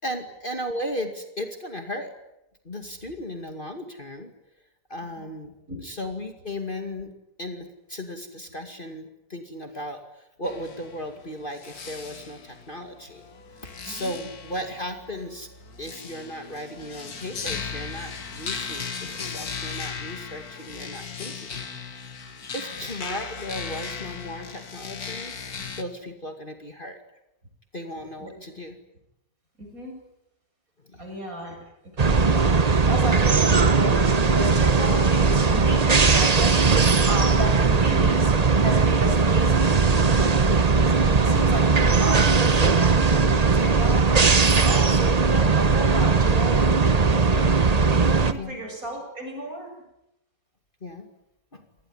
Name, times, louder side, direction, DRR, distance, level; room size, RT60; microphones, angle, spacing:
voice 1, 0.0-2.1 2.6-4.3 4.9-5.5 5.8-7.1 7.4-13.3 13.8-15.5 15.8-22.0 22.5-25.3 25.6-27.0 27.7-28.8 30.8-31.1 48.4-48.6 50.8-51.1 51.5-51.6, equal, 30° left, 5 dB, 2.4 m, -36 dB
sound 1, 10.4-25.8, left 5 dB, 60° left, 2.3 m, -37 dB
voice 2, 13.9-14.2 28.2-28.3 29.6-30.0 31.0-31.6 31.9-32.6 32.9-38.4 38.6-40.9 41.2-49.7, right 1 dB, 55° right, 2 dB, 8.2 m, -33 dB
sound 2, 32.0-48.3, right 4 dB, 30° right, 1.0 m, -19 dB
28.0 x 19.5 x 10.0 m, 0.88 s
omnidirectional pair, 1.8 m